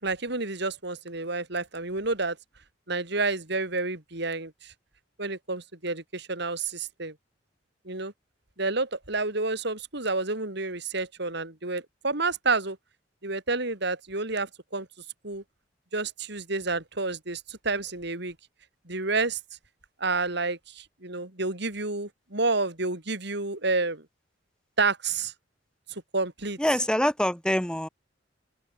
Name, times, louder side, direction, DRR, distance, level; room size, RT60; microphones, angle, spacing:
voice 1, 0.0-2.4 2.9-4.7 5.2-7.1 7.8-8.1 8.6-12.8 13.2-14.9 15.2-15.4 15.9-18.3 18.9-19.4 20.0-24.0 24.8-25.3 25.9-26.6, right 3 dB, 65° right, 5.0 m, -29 dB
voice 2, 26.6-27.9, equal, 5° left, 3.6 m, -25 dB
open air
head